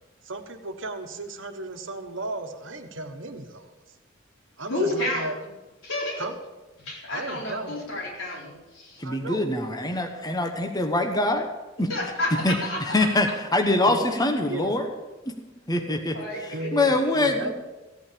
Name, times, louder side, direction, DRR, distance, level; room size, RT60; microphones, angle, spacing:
voice 1, 0.2-3.7 4.6-5.4 6.2-6.3 7.1-7.8 9.0-9.4 13.9-14.1 14.5-14.8 16.5-17.6, right 2 dB, 75° right, 6 dB, 1.3 m, -35 dB
voice 2, 4.7-5.3 5.8-6.3 6.8-9.0 11.9-13.1 15.8-16.9, left 1 dB, 85° left, -3 dB, 4.5 m, -31 dB
voice 3, 9.0-11.5 11.8-11.9 12.4-12.6 12.9-14.9 15.7-17.5, left 2 dB, 20° left, 4 dB, 1.1 m, -24 dB
15.5 x 8.6 x 6.9 m, 1.1 s
head